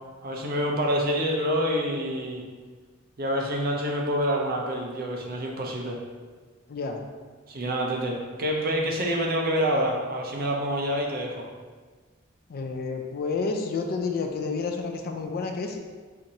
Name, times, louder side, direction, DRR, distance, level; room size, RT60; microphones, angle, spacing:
voice 1, 0.2-2.4 3.2-6.0 7.5-11.5, equal, 45° right, 0 dB, 0.6 m, -27 dB
voice 2, 12.5-15.8, left 4 dB, 45° left, 4 dB, 0.3 m, -30 dB
4.5 x 2.6 x 2.7 m, 1.4 s
head